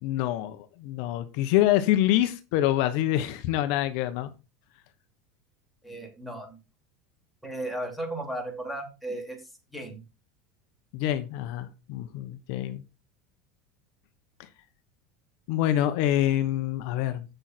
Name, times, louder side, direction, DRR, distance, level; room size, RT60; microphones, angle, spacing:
voice 1, 0.0-4.3 10.9-12.8 14.4-14.5 15.5-17.2, left 13 dB, 65° left, 10 dB, 1.0 m, -26 dB
voice 2, 5.8-6.6 7.4-9.4 9.7-10.0, right 1 dB, ahead, 3 dB, 2.9 m, -35 dB
7.9 x 6.3 x 4.4 m, 0.28 s
supercardioid pair, 130°, 0 cm